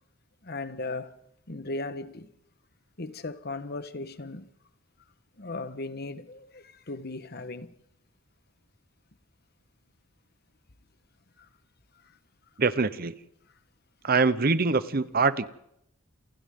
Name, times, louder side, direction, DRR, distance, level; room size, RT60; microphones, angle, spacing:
voice 1, 0.4-1.1 1.5-2.3 3.0-4.5 5.4-7.7 11.4-11.5, left 2 dB, 50° left, 1.3 m, -37 dB
voice 2, 12.6-13.1 14.0-15.5, right 4 dB, 45° right, 0.9 m, -24 dB
28.5 x 27.5 x 3.8 m
head